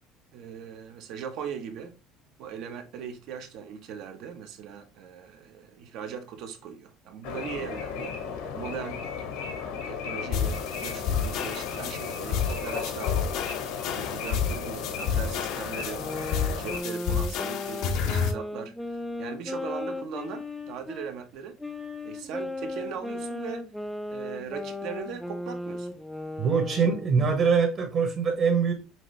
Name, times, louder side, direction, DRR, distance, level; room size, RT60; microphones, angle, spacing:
voice 1, 0.3-1.9 2.4-8.2 8.5-9.1 9.4-13.1 13.8-16.1 16.6-21.6 22.0-23.7 24.1-25.9, right 7 dB, 55° right, 0.9 m, -39 dB
sound 1, 7.2-16.8, left 6 dB, 80° left, 1.1 m, -35 dB
sound 2, 10.3-18.3, left 7 dB, 55° left, 0.7 m, -30 dB
sound 3, 15.9-21.1 21.6-27.2, left 2 dB, 5° left, 0.4 m, -36 dB
voice 2, 26.4-28.7, right 5 dB, 35° right, 1.2 m, -23 dB
5.9 x 2.6 x 3.2 m
cardioid pair, 160°, 0 cm